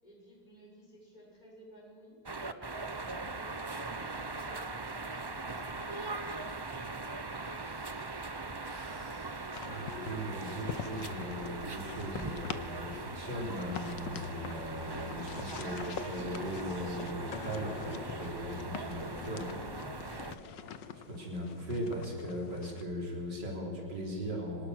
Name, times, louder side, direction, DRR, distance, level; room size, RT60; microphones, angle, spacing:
voice 1, 0.0-2.2 3.0-6.5 21.1-21.3, equal, 25° left, -4 dB, 6.9 m, -56 dB
sound 1, 2.3-20.4, right 3 dB, 35° right, 0.3 m, -40 dB
voice 2, 7.4-8.2 8.6-19.6 21.1-24.7, equal, 75° right, 0 dB, 4.5 m, -39 dB
sound 2, 9.5-22.8, left 7 dB, 85° left, 1.7 m, -45 dB
sound 3, 17.3-19.4, left 6 dB, 45° left, 0.6 m, -49 dB
25.5 x 19.0 x 6.5 m, 2.4 s
omnidirectional pair, 1.9 m